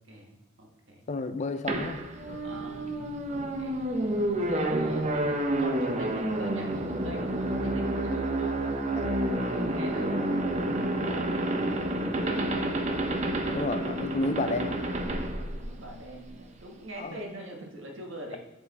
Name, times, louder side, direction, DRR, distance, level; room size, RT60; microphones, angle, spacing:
voice 1, 0.1-1.1 2.4-3.0 3.3-3.8 4.5-5.1 5.6-9.1 9.5-12.7 15.6-18.4, right 1 dB, 75° right, 0 dB, 1.5 m, -42 dB
voice 2, 1.1-2.1 8.9-9.1 13.5-14.8 17.0-17.2, left 3 dB, 35° left, 10 dB, 0.4 m, -31 dB
sound 1, 1.7-16.2, right 1 dB, 35° right, 0.7 m, -29 dB
sound 2, 2.1-7.8, left 1 dB, 85° left, 1.3 m, -47 dB
7.1 x 5.6 x 4.1 m, 0.94 s
head